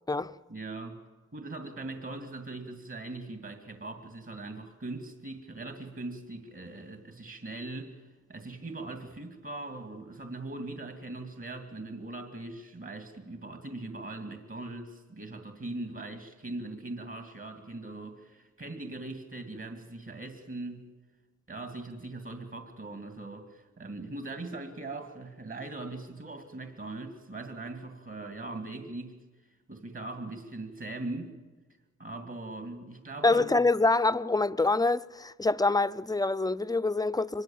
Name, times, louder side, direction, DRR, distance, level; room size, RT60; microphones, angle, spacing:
voice 1, 0.5-1.0 1.3-20.9 21.5-29.2 29.7-31.4 32.0-33.6, right 2 dB, 45° right, 2.6 m, -40 dB
voice 2, 33.2-37.4, left 3 dB, 15° left, 0.7 m, -25 dB
24.5 x 22.0 x 7.4 m
wide cardioid pair, 70°, 29 cm